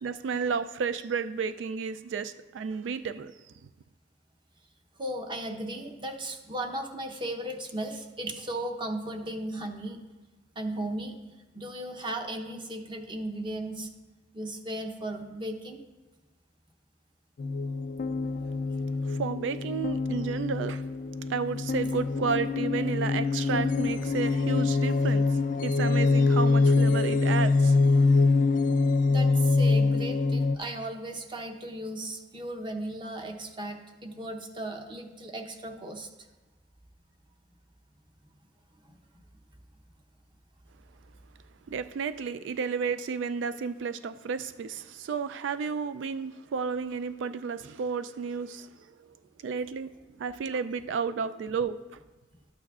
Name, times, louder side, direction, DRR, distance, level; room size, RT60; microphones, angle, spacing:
voice 1, 0.0-3.3 19.0-20.9 21.3-27.8 41.7-48.7 49.4-49.9 50.2-52.0, right 5 dB, 80° right, 12 dB, 0.3 m, -32 dB
voice 2, 5.0-10.0 10.6-11.2 11.5-13.9 14.3-15.8 29.1-36.1 38.8-38.9, right 1 dB, 25° right, 4 dB, 0.8 m, -36 dB
sound 1, 17.4-30.6, left 3 dB, 45° left, 0.3 m, -24 dB
12.0 x 8.5 x 2.4 m, 1.2 s
head